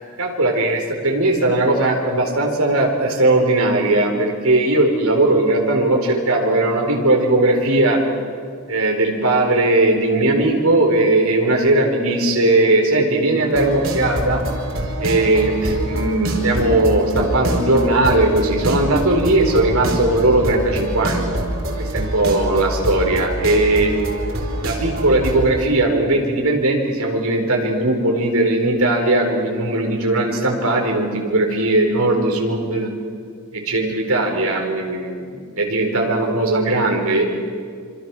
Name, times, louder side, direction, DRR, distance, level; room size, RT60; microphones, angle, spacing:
voice 1, 0.0-8.0 8.7-14.4 15.0-21.3 21.8-23.9 24.6-32.9 33.5-37.2, right 2 dB, 80° right, 1 dB, 4.6 m, -18 dB
sound 1, 13.4-25.4, right 1 dB, 60° right, 4.3 m, -25 dB
27.0 x 26.5 x 6.3 m, 2.1 s
head